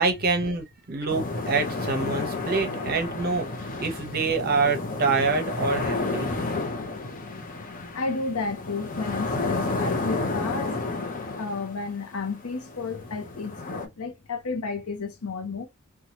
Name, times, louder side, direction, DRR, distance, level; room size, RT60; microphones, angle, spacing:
voice 1, 0.0-6.3, right 4 dB, 45° right, 0.7 m, -26 dB
sound 1, 1.1-13.9, left 3 dB, 40° left, 0.7 m, -31 dB
voice 2, 7.9-10.7 11.4-15.6, left 4 dB, 80° left, 0.7 m, -32 dB
2.7 x 2.3 x 2.8 m
head